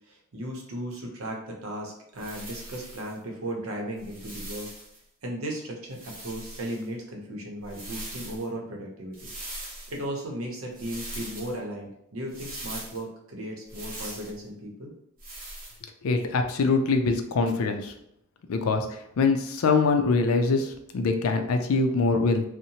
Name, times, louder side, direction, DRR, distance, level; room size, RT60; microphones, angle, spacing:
voice 1, 0.1-4.7 5.2-9.3 9.9-14.9, right 1 dB, 85° right, 0 dB, 0.7 m, -36 dB
sound 1, 2.2-3.1 4.0-5.0 5.9-6.8 7.6-8.4 9.1-10.0 10.7-11.5 12.3-13.0 13.7-14.4 15.2-15.8, right 1 dB, 45° right, 0.8 m, -40 dB
voice 2, 16.0-17.9 18.5-22.4, left 3 dB, 90° left, 6 dB, 0.4 m, -24 dB
2.7 x 2.1 x 2.8 m, 0.77 s
head